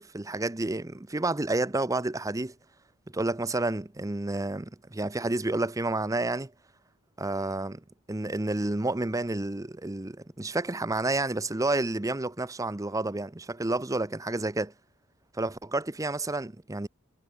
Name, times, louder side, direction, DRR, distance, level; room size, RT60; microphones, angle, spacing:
voice 1, 0.0-2.5 3.1-6.5 7.2-7.8 8.1-14.7 15.3-16.9, right 2 dB, 15° right, 0.7 m, -30 dB
head